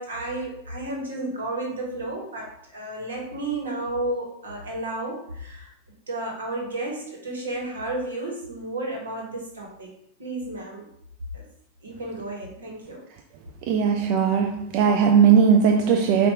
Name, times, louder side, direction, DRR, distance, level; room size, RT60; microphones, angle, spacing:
voice 1, 0.0-5.7 6.1-9.9 10.2-10.9 11.3-11.4 11.8-13.0, right 2 dB, 85° right, 1.2 m, -32 dB
voice 2, 13.6-16.3, right 7 dB, 50° right, 0.4 m, -18 dB
4.2 x 2.5 x 3.4 m
hypercardioid pair, 95°, 0 cm